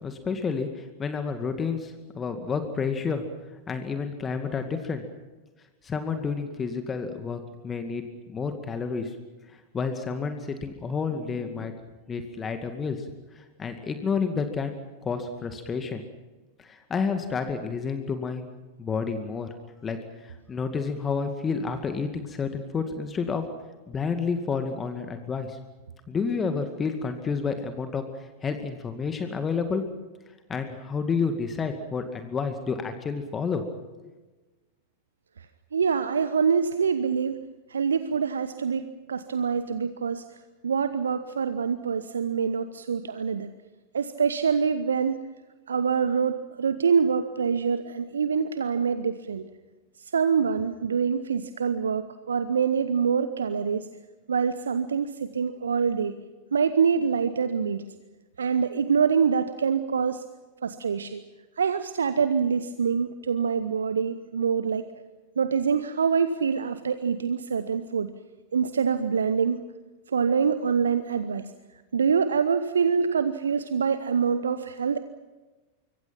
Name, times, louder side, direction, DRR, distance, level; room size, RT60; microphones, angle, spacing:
voice 1, 0.0-3.2 3.7-5.0 5.8-9.1 9.7-11.7 12.1-13.0 13.4-14.8 15.0-16.0 16.6-18.4 18.8-19.5 19.8-20.0 20.2-23.4 23.9-25.6 26.1-28.1 28.4-29.8 30.5-33.6 34.0-34.1, left 5 dB, 20° left, 7 dB, 2.2 m, -30 dB
voice 2, 35.7-37.4 37.7-40.3 40.6-43.5 43.9-45.3 45.7-49.5 50.1-53.9 54.3-56.2 56.5-57.8 58.4-60.2 60.6-61.2 61.6-64.9 65.4-68.1 68.5-69.6 70.1-71.5 71.9-75.0, right 6 dB, 70° right, 12 dB, 1.0 m, -25 dB
25.5 x 24.0 x 5.9 m, 1.2 s
figure-of-eight pair, 90°, 0 cm